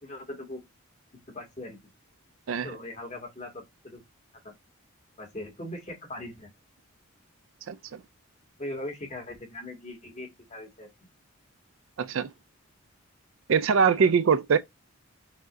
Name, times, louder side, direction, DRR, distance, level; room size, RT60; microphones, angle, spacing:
voice 1, 0.0-0.6 1.3-1.8 2.6-4.0 4.4-4.5 5.2-6.5 8.6-10.9 13.7-14.1, left 1 dB, 30° left, 1.8 m, -40 dB
voice 2, 7.7-8.0 12.0-12.3 13.5-14.6, right 6 dB, 65° right, 0.4 m, -23 dB
6.1 x 2.7 x 2.5 m
head